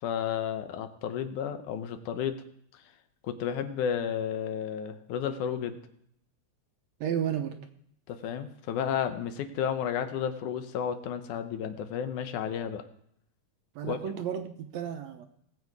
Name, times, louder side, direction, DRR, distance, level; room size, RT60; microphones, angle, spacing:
voice 1, 0.0-2.4 2.7-2.8 3.2-5.8 8.1-12.8 13.8-14.0, left 8 dB, 80° left, 9 dB, 2.3 m, -32 dB
voice 2, 7.0-7.6 13.8-15.3, right 9 dB, 70° right, 7 dB, 2.0 m, -32 dB
19.0 x 7.6 x 4.7 m, 0.71 s
omnidirectional pair, 3.6 m